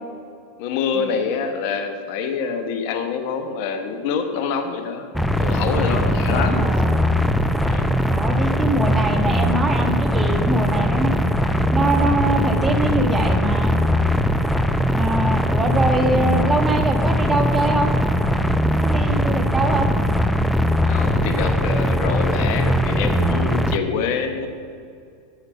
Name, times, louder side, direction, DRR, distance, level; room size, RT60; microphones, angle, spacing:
voice 1, 0.6-5.1 5.4-6.7 7.6-7.9 20.9-24.5, left 6 dB, 60° left, 7 dB, 1.2 m, -26 dB
sound 1, 5.1-23.8, equal, ahead, 0.6 m, -20 dB
voice 2, 6.3-7.0 8.1-11.1 11.7-13.7 14.9-17.9 18.8-19.9, right 1 dB, 15° right, 4 dB, 1.4 m, -23 dB
9.4 x 7.9 x 6.9 m, 2.4 s
hypercardioid pair, 100°, 0 cm